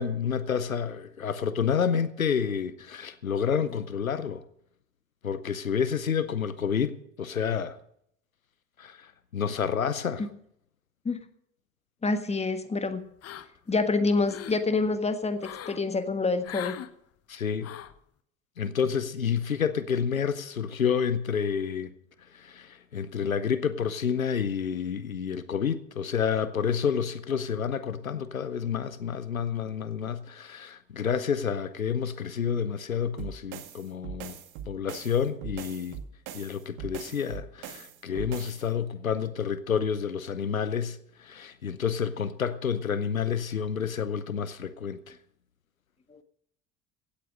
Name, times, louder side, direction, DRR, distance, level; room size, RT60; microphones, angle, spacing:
voice 1, 0.0-4.4 5.2-7.8 8.8-10.3 17.3-17.7 18.6-21.9 22.3-34.4 34.7-36.0 36.3-45.2, left 7 dB, 90° left, 0.8 m, -29 dB
voice 2, 12.0-13.0 13.7-16.8 46.1-46.2, left 3 dB, 15° left, 1.5 m, -27 dB
sound 1, 13.2-13.7 14.1-14.6 15.4-15.8 16.4-16.9 17.6-18.0, left 10 dB, 35° left, 1.0 m, -40 dB
sound 2, 33.2-38.7, right 8 dB, 60° right, 1.8 m, -41 dB
16.5 x 8.3 x 6.5 m
figure-of-eight pair, 60°, 40 cm